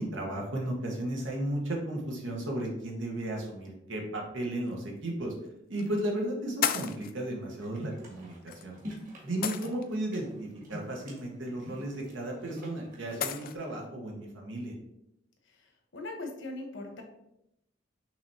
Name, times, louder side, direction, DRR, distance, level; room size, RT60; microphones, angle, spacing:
voice 1, 0.0-5.3 5.7-8.8 9.2-14.7, right 1 dB, 85° right, -1 dB, 1.1 m, -34 dB
sound 1, 4.6-4.7 5.8-6.0 6.6-7.1 8.5-8.6 9.4-10.0 12.0-12.1 13.2-13.6, left 9 dB, 50° left, 0.3 m, -32 dB
sound 2, 7.5-13.8, equal, 45° right, 1.6 m, -46 dB
voice 2, 15.4-17.0, left 2 dB, 75° left, 3 dB, 1.0 m, -41 dB
5.9 x 3.3 x 2.7 m, 0.81 s
head